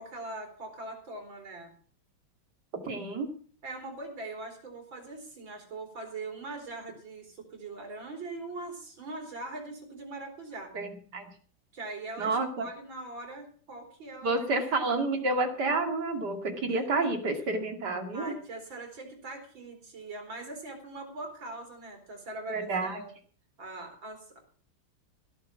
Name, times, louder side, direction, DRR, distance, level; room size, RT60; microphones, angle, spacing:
voice 1, 0.0-1.7 3.6-10.7 11.7-15.2 18.1-23.1 23.6-24.4, right 2 dB, 75° right, 2 dB, 4.8 m, -42 dB
voice 2, 2.8-3.3 10.7-10.9 11.1-11.2 12.2-12.7 14.2-18.3 22.5-23.0, right 3 dB, 55° right, 5 dB, 3.0 m, -29 dB
16.5 x 7.5 x 7.4 m, 0.44 s
omnidirectional pair, 2.1 m